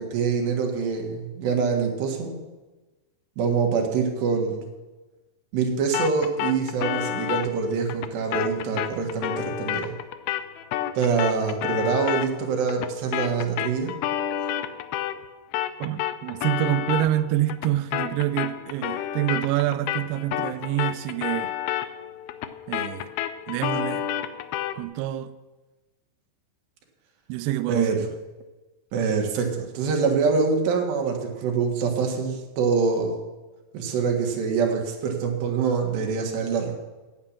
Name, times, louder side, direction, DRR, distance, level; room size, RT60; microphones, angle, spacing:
voice 1, 0.0-2.3 3.4-4.7 5.5-9.9 11.0-13.9 27.7-28.0 28.9-33.1 33.7-36.7, right 5 dB, 70° right, 3.6 m, -25 dB
sound 1, 5.9-15.3 15.5-24.8, left 11 dB, 90° left, 2.2 m, -30 dB
voice 2, 15.8-21.5 22.7-23.1 23.5-24.1 24.8-25.3 27.3-28.1, right 14 dB, 85° right, 2.3 m, -26 dB
10.0 x 8.6 x 7.3 m
omnidirectional pair, 5.3 m